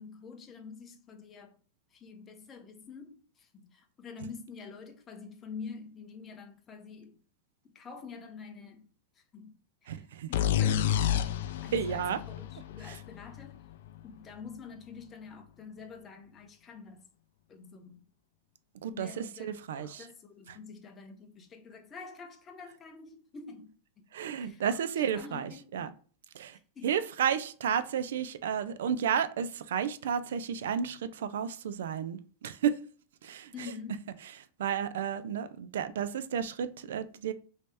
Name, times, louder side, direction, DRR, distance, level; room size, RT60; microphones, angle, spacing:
voice 1, 0.0-1.6 1.9-7.2 7.6-8.8 9.2-10.0 10.3-11.3 11.6-13.6 14.0-17.1 17.5-18.0 18.9-23.7 24.4-24.8 25.1-25.9 26.8-26.9 33.5-34.0, left 5 dB, 20° left, 0.6 m, -47 dB
voice 2, 9.9-10.3 11.7-12.2 12.8-13.0 18.8-20.1 20.5-20.6 24.1-25.9 26.3-32.8 33.2-33.7 34.6-37.3, right 8 dB, 85° right, 0.3 m, -32 dB
sound 1, 10.3-14.0, left 10 dB, 70° left, 0.3 m, -30 dB
3.2 x 2.8 x 3.3 m
supercardioid pair, 145°, 0 cm